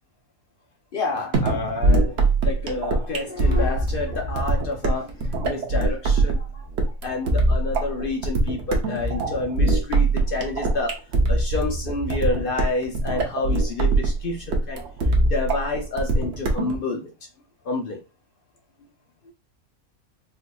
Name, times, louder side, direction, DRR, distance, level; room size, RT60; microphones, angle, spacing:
voice 1, 0.9-2.2 2.4-6.7 7.0-11.0 11.3-14.8 15.3-17.1 17.7-18.0, left 3 dB, 65° left, 2 dB, 0.5 m, -29 dB
sound 1, 1.3-16.8, right 2 dB, 55° right, 0.9 m, -22 dB
4.4 x 2.5 x 2.3 m, 0.30 s
omnidirectional pair, 1.5 m